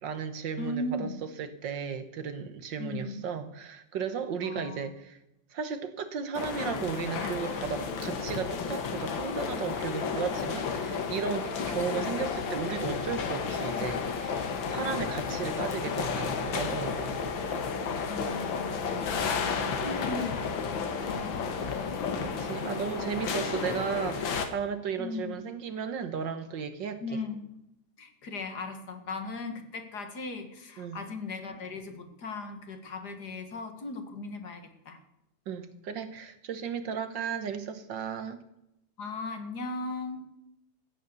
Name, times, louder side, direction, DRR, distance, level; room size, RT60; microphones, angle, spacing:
voice 1, 0.0-1.1 1.4-5.2 5.5-17.2 19.6-20.1 22.2-27.0 30.8-31.0 35.5-38.4, right 7 dB, 65° right, 1.8 m, -35 dB
voice 2, 0.6-1.2 2.8-3.3 4.4-4.9 18.1-21.8 25.0-25.4 27.0-27.5 28.0-35.0 39.0-40.3, left 2 dB, 55° left, 2.1 m, -38 dB
sound 1, 6.3-24.5, left 5 dB, 75° left, 2.1 m, -32 dB
15.0 x 9.5 x 6.9 m
omnidirectional pair, 2.1 m